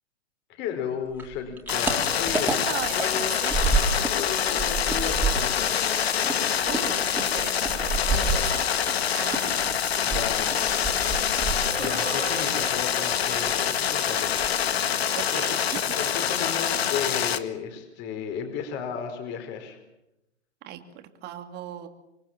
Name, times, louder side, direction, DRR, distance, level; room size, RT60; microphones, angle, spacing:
voice 1, 0.5-3.6 4.0-5.6 10.0-11.1 11.8-14.5 15.3-15.6 15.9-19.8, left 7 dB, 30° left, 6 dB, 4.7 m, -34 dB
sound 1, 1.1-4.2 4.5-9.0 9.3-12.1 12.3-13.0 13.3-13.6 13.9-14.0 14.3-14.8, right 4 dB, 5° right, 3.8 m, -29 dB
sound 2, 1.7-17.4, left 9 dB, 60° left, 1.8 m, -26 dB
voice 2, 2.7-3.6 6.6-8.7 9.1-9.7 15.1-16.0 20.6-21.9, right 11 dB, 30° right, 7 dB, 2.7 m, -37 dB
sound 3, 3.3-7.0 7.6-10.9 11.5-13.0, right 4 dB, 80° right, 5.1 m, -42 dB
26.5 x 24.0 x 7.5 m, 0.91 s
figure-of-eight pair, 120°, 35 cm